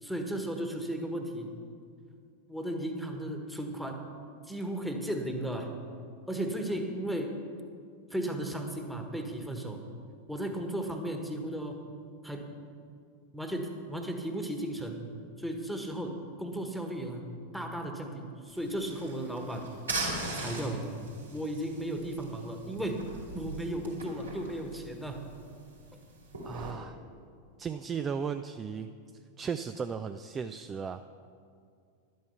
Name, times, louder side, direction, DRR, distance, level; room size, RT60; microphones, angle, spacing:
voice 1, 0.0-1.5 2.5-4.0 4.5-5.7 6.3-7.4 8.1-9.8 10.3-11.8 12.2-12.5 13.3-15.0 15.4-19.7 20.3-20.9 21.3-23.0 23.3-25.2, right 1 dB, ahead, 3 dB, 1.4 m, -35 dB
sound 1, 18.5-26.7, right 2 dB, 75° right, 3.0 m, -40 dB
voice 2, 26.4-27.0 27.6-28.9 29.4-31.1, right 6 dB, 20° right, 10 dB, 0.4 m, -35 dB
12.0 x 9.4 x 5.6 m, 2.3 s
figure-of-eight pair, 90°, 0 cm